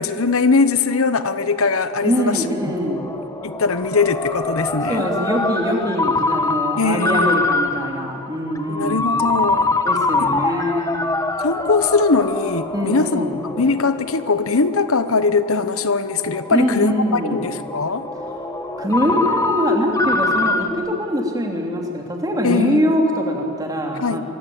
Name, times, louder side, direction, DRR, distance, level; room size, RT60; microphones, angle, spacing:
voice 1, 0.0-2.5 3.4-5.1 6.8-7.3 8.7-9.7 10.2-10.3 11.4-13.3 13.6-18.1 22.4-22.8 24.0-24.2, left 4 dB, 75° left, 12 dB, 1.0 m, -20 dB
Ringtone, 0.9-20.7, left 2 dB, 15° left, 1.2 m, -25 dB
voice 2, 2.0-3.0 4.9-9.1 9.8-10.9 12.7-13.4 16.5-17.4 18.4-18.5 18.8-24.2, equal, 15° right, 1 dB, 3.3 m, -23 dB
25.5 x 23.5 x 8.7 m, 2.8 s
head